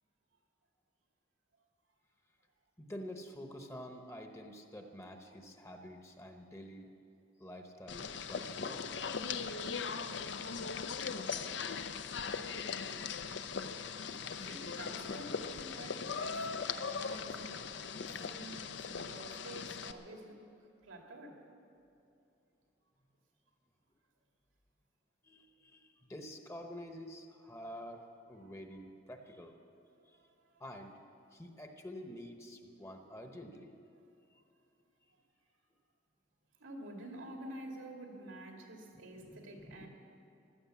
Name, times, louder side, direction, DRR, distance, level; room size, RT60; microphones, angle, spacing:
voice 1, 2.8-6.9 7.4-9.0 25.2-29.5 30.6-30.9 31.3-33.8 34.3-34.4 39.2-39.9, equal, 15° left, 4 dB, 1.0 m, -48 dB
sound 1, 7.9-19.9, left 5 dB, 60° left, 0.6 m, -39 dB
voice 2, 14.0-17.7 18.1-20.4 20.8-21.4 28.4-28.5 30.1-30.6 36.6-39.9, right 1 dB, 90° right, 1 dB, 2.4 m, -49 dB
15.5 x 12.5 x 7.3 m, 2.7 s
head